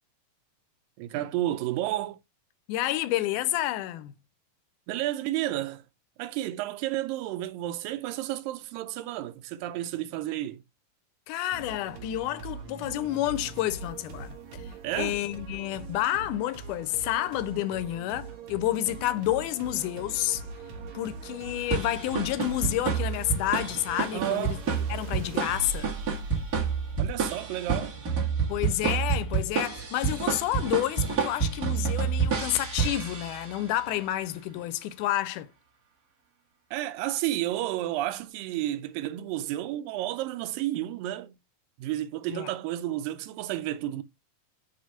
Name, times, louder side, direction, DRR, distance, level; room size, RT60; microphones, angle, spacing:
voice 1, 1.0-2.2 4.9-5.8 6.2-10.6 14.8-15.2 24.1-24.6 27.0-28.0 36.7-41.3 41.8-44.0, right 14 dB, 85° right, 2.3 m, -31 dB
voice 2, 2.7-4.1 11.3-20.4 20.9-24.6 24.9-25.9 28.5-35.5 42.3-42.5, left 14 dB, 80° left, 1.8 m, -29 dB
sound 1, 11.5-27.3, right 4 dB, 60° right, 2.2 m, -41 dB
sound 2, 21.7-33.7, right 6 dB, 35° right, 1.5 m, -29 dB
6.2 x 2.8 x 5.5 m
omnidirectional pair, 4.0 m